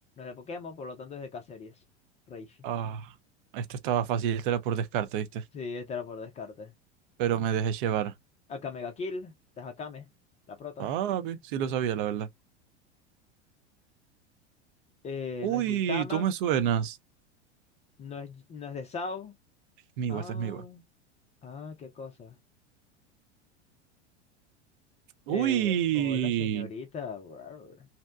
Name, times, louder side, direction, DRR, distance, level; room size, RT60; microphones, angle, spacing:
voice 1, 0.2-1.7 2.3-2.6 5.5-6.7 8.5-10.1 10.5-10.9 15.0-16.3 18.0-19.3 20.1-20.8 21.4-22.4 25.3-27.9, left 4 dB, 20° left, 0.4 m, -39 dB
voice 2, 2.6-3.1 3.5-5.4 7.2-8.1 10.8-12.3 15.4-17.0 20.0-20.6 25.3-26.7, right 10 dB, 50° right, 0.5 m, -28 dB
2.7 x 2.1 x 2.3 m
figure-of-eight pair, 85°, 35 cm